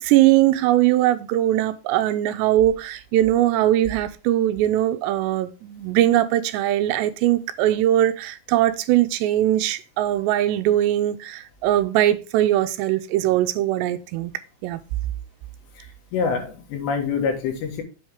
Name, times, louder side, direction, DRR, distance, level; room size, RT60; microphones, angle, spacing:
voice 1, 0.0-14.3 14.6-14.8, right 13 dB, 85° right, 2.7 m, -20 dB
voice 2, 16.1-17.8, left 5 dB, 80° left, 3.6 m, -25 dB
8.0 x 6.3 x 3.5 m
omnidirectional pair, 5.0 m